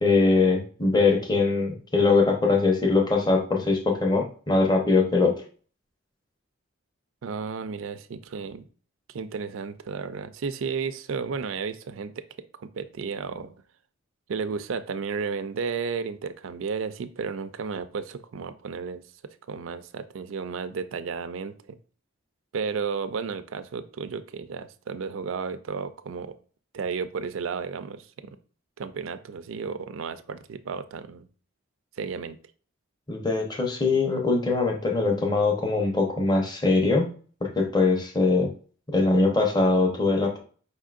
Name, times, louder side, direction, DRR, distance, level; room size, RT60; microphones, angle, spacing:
voice 1, 0.0-5.3 33.1-37.1 37.4-38.5 38.9-40.4, left 3 dB, 20° left, 1 dB, 0.8 m, -22 dB
voice 2, 7.2-8.7 9.1-13.5 14.3-19.0 19.5-21.8 22.5-26.3 26.7-28.4 28.8-31.3 32.0-32.4, right 5 dB, 70° right, 11 dB, 0.4 m, -33 dB
5.1 x 3.6 x 2.5 m, 0.41 s
head